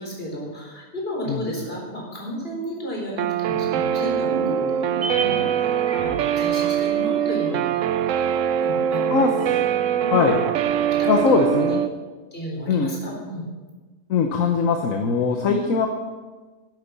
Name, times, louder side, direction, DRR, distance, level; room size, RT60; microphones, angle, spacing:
voice 1, 0.0-4.9 5.2-5.4 6.0-7.7 8.6-9.3 10.0-10.3 11.0-11.1 11.4-11.8 12.3-13.5 15.4-15.6, equal, 40° left, -4 dB, 4.5 m, -32 dB
Guitar, 3.2-11.9, right 9 dB, 70° right, 0.9 m, -23 dB
sound 1, 4.3-8.8 9.0-9.1, right 2 dB, 40° right, 1.7 m, -34 dB
voice 2, 11.1-11.8 12.7-12.9 14.1-15.9, left 5 dB, 65° left, 4 dB, 1.3 m, -20 dB
11.5 x 8.3 x 6.8 m, 1.3 s
omnidirectional pair, 1.5 m